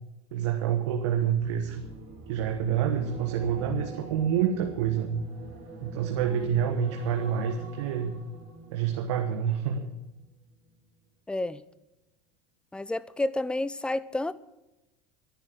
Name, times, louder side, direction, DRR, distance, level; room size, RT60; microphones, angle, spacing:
voice 1, 0.3-1.8 2.3-5.2 5.8-8.1 8.7-9.9, right 8 dB, 85° right, 4 dB, 1.4 m, -27 dB
sound 1, 0.9-10.3 10.6-10.9, right 3 dB, 50° right, 4.8 m, -44 dB
voice 2, 6.2-6.6 11.3-11.6 12.7-14.3, left 2 dB, 5° left, 17 dB, 0.6 m, -30 dB
12.0 x 10.5 x 7.7 m, 0.97 s
supercardioid pair, 115°, 15 cm